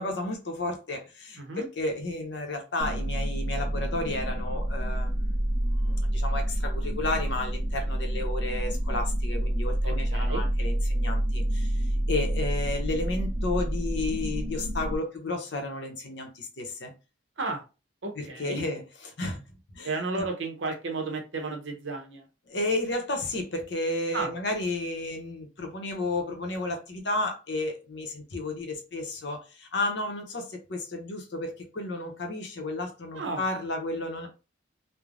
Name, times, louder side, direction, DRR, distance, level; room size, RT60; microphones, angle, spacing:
voice 1, 0.0-11.8 12.1-16.9 18.2-18.8 19.2-19.4 19.7-19.9 20.2-20.3 22.5-34.3, left 2 dB, 60° left, 0.7 m, -32 dB
sound 1, 2.8-15.0, right 1 dB, 35° right, 0.5 m, -28 dB
voice 2, 9.8-10.5 17.4-17.6 18.0-18.6 19.8-22.3 24.1-24.3 33.1-33.4, right 3 dB, 70° right, 0.8 m, -33 dB
3.2 x 2.1 x 2.4 m
head